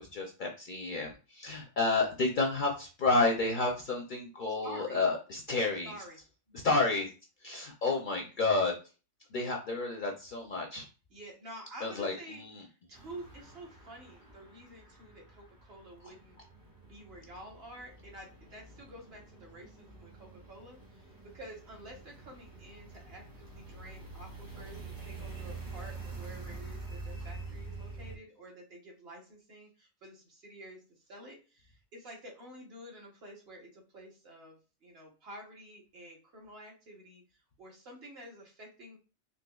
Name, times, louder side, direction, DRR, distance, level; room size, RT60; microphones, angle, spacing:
voice 1, 0.0-5.9 6.5-7.1 7.4-8.7 9.3-10.9 11.8-12.6, left 3 dB, 55° left, 1 dB, 0.6 m, -30 dB
voice 2, 4.6-5.1 5.8-6.2 6.5-7.0 11.1-16.4 16.8-21.1 21.3-30.8 31.1-39.0, right 1 dB, 60° right, -1 dB, 1.2 m, -50 dB
sound 1, 12.9-28.1, right 3 dB, 25° right, 0.6 m, -47 dB
3.9 x 2.6 x 2.3 m, 0.34 s
omnidirectional pair, 1.2 m